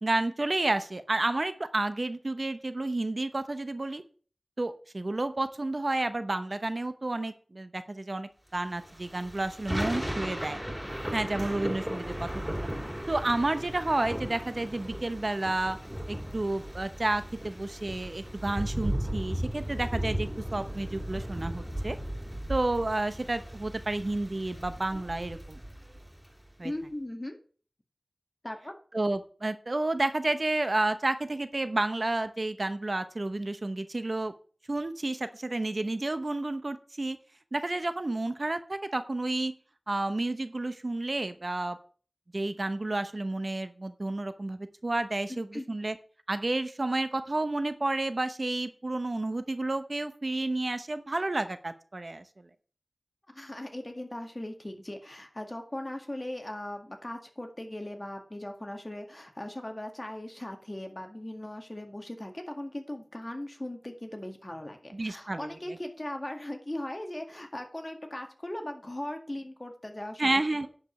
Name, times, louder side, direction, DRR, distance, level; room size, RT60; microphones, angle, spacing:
voice 1, 0.0-4.0 4.6-10.6 11.1-12.7 13.1-15.8 16.1-22.0 22.5-25.6 26.6-26.7 28.9-34.3 34.7-37.2 37.5-39.5 39.9-41.8 42.3-45.9 46.3-52.2 64.9-65.5 70.2-70.7, right 2 dB, 55° right, 10 dB, 0.8 m, -31 dB
Thunder / Rain, 8.8-26.3, equal, 10° right, 3.4 m, -36 dB
voice 2, 26.6-27.4 28.4-28.7 45.3-45.7 53.3-70.7, left 1 dB, 30° left, 4 dB, 1.9 m, -39 dB
10.5 x 5.2 x 7.2 m, 0.42 s
wide cardioid pair, 50°, 0 cm